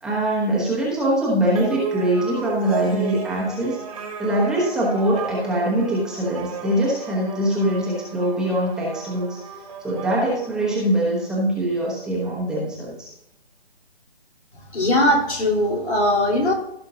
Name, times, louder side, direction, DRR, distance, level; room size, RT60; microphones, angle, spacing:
voice 1, 0.0-3.8 4.2-9.4 9.8-13.1, right 1 dB, ahead, -6 dB, 1.1 m, -23 dB
sound 1, 1.5-11.3, right 5 dB, 35° right, 1.6 m, -34 dB
voice 2, 14.7-16.5, left 1 dB, 90° left, -2 dB, 3.8 m, -20 dB
15.5 x 6.3 x 2.8 m, 0.78 s
figure-of-eight pair, 155°, 32 cm